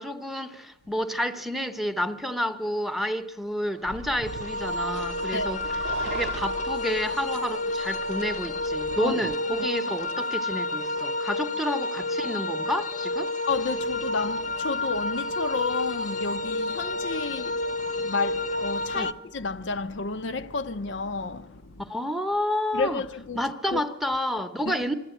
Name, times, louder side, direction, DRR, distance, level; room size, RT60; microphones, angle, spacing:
voice 1, 0.0-13.3 18.9-19.1 21.8-23.0 23.3-24.9, equal, ahead, 0.8 m, -30 dB
sound 1, 3.8-9.4, right 3 dB, 80° right, 0.6 m, -40 dB
sound 2, 4.3-19.1, left 2 dB, 40° left, 0.8 m, -30 dB
voice 2, 13.5-21.8 22.7-23.4 23.7-23.8 24.7-24.8, left 4 dB, 70° left, 0.6 m, -31 dB
24.5 x 13.0 x 9.0 m
head